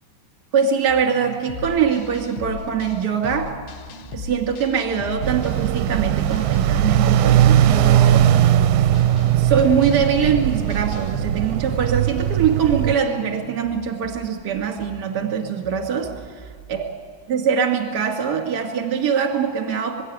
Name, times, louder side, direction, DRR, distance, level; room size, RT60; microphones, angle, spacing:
voice 1, 0.5-3.5 4.1-8.3 9.4-16.1 16.7-16.9 17.3-20.0, right 7 dB, 35° right, 3 dB, 2.3 m, -22 dB
sound 1, 0.9-16.9, right 3 dB, 10° left, 3.5 m, -42 dB
sound 2, 1.5-11.4, left 6 dB, 75° left, 1.9 m, -37 dB
sound 3, 5.2-13.0, right 11 dB, 80° right, 2.3 m, -19 dB
21.0 x 16.0 x 8.8 m, 2.1 s
omnidirectional pair, 4.2 m